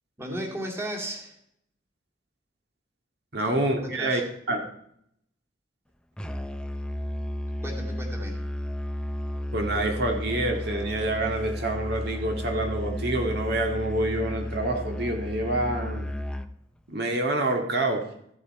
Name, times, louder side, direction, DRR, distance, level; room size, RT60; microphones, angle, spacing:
voice 1, 0.2-1.4 3.8-4.2 7.6-8.4, equal, 15° right, 0 dB, 2.3 m, -35 dB
voice 2, 3.3-4.2 4.5-4.6 9.5-16.1 16.9-18.1, right 2 dB, 60° right, 3 dB, 2.0 m, -27 dB
Musical instrument, 6.2-16.5, left 1 dB, 5° left, 0.5 m, -33 dB
14.5 x 8.5 x 4.4 m, 0.72 s
head